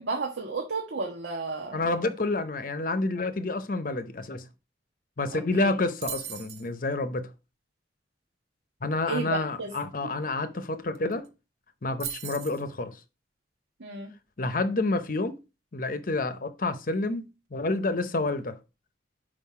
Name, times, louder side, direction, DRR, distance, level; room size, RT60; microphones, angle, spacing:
voice 1, 0.0-1.8 5.3-5.7 9.0-9.7 13.8-14.1, right 3 dB, 90° right, 1.4 m, -32 dB
voice 2, 1.7-4.4 5.2-7.3 8.8-11.3 11.8-13.0 14.4-15.4 15.7-18.6, left 2 dB, 50° left, 0.7 m, -29 dB
sound 1, 6.0-6.7 10.6-10.7 10.9-11.3 12.0-12.6, right 9 dB, 65° right, 0.9 m, -37 dB
5.6 x 5.0 x 4.8 m
head